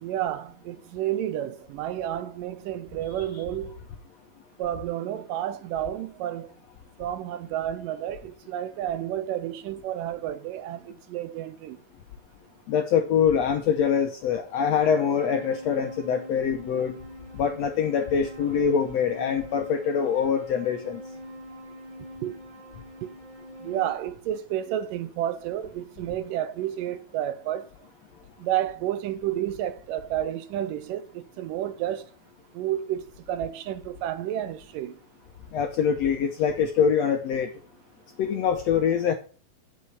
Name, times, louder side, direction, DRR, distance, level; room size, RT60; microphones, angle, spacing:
voice 1, 0.0-3.8 4.6-6.5 7.0-11.8 22.2-22.4 23.0-23.1 23.6-27.7 28.4-32.1 32.5-33.0 33.3-34.9, right 12 dB, 75° right, 2.3 m, -31 dB
voice 2, 12.7-16.9 17.3-21.0 35.5-37.5 38.2-39.1, left 7 dB, 75° left, 1.6 m, -24 dB
sound 1, 14.8-23.9, equal, 15° right, 2.7 m, -43 dB
8.1 x 6.5 x 8.3 m
omnidirectional pair, 4.1 m